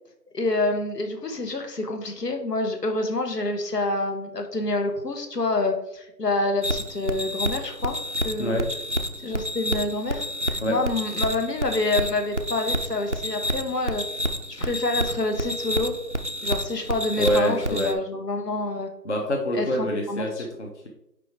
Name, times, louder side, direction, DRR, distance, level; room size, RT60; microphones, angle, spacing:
voice 1, 0.3-8.0 8.2-8.6 9.2-14.0 14.5-15.9 16.4-18.9 19.5-20.4, left 2 dB, 75° left, 4 dB, 1.4 m, -27 dB
sound 1, 6.6-17.9, equal, 50° right, 0.5 m, -29 dB
voice 2, 17.2-18.0 19.0-20.3 20.6-20.9, equal, 45° left, 1 dB, 0.9 m, -25 dB
5.0 x 4.7 x 4.8 m, 0.82 s
figure-of-eight pair, 175°, 49 cm